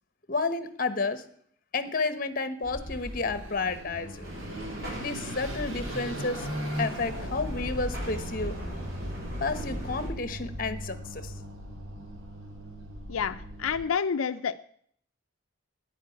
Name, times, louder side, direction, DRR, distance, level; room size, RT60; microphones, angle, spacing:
voice 1, 0.3-1.2 1.7-4.3 5.0-6.5 6.8-8.6 9.4-11.3, left 3 dB, 40° left, 12 dB, 1.1 m, -31 dB
Car passing by / Accelerating revving vroom, 2.6-13.9, equal, 85° right, 3.4 m, -37 dB
sound 1, 4.2-10.1, right 1 dB, 50° right, 6.8 m, -41 dB
voice 2, 13.1-14.5, left 6 dB, 90° left, 9 dB, 0.5 m, -29 dB
10.0 x 9.2 x 9.3 m, 0.64 s
head